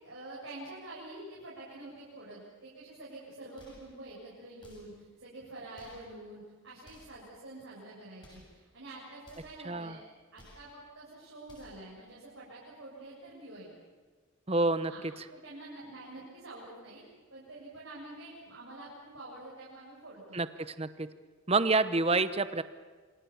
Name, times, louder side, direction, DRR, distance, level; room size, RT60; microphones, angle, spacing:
voice 1, 0.0-10.0 10.3-13.7 14.9-17.0 17.3-20.4, right 2 dB, 65° right, -6 dB, 7.4 m, -47 dB
sound 1, 3.6-3.9 4.6-5.0 5.7-6.1 6.8-7.2 8.2-8.6 9.2-9.6 10.3-10.7 11.4-11.9, left 1 dB, 20° left, 7.5 m, -57 dB
voice 2, 14.5-14.9 20.3-20.5 20.8-21.1 21.5-22.6, right 3 dB, 30° right, 12 dB, 0.9 m, -27 dB
28.0 x 25.5 x 7.3 m, 1.5 s
head